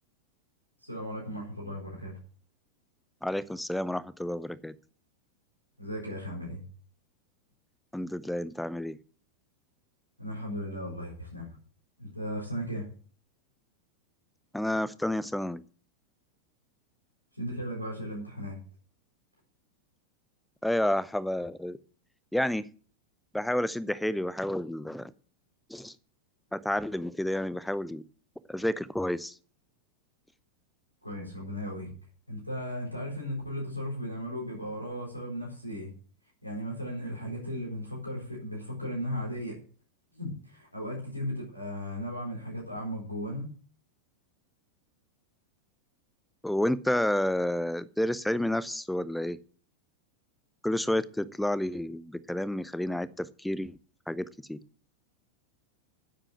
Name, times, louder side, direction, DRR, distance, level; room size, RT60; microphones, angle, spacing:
voice 1, 0.8-2.2 5.8-6.6 10.2-11.6 12.0-12.9 17.3-18.6 31.0-31.9 32.3-35.9 36.4-39.6 40.1-43.5, equal, 90° left, -1 dB, 4.1 m, -36 dB
voice 2, 3.2-4.8 7.9-9.0 14.5-15.6 20.6-21.8 22.3-22.7 23.3-25.1 25.7-26.0 26.5-28.0 28.5-29.4 46.4-49.4 50.6-53.8 54.1-54.6, left 1 dB, 5° left, 19 dB, 0.6 m, -30 dB
9.9 x 7.6 x 7.3 m, 0.42 s
figure-of-eight pair, 90°, 0 cm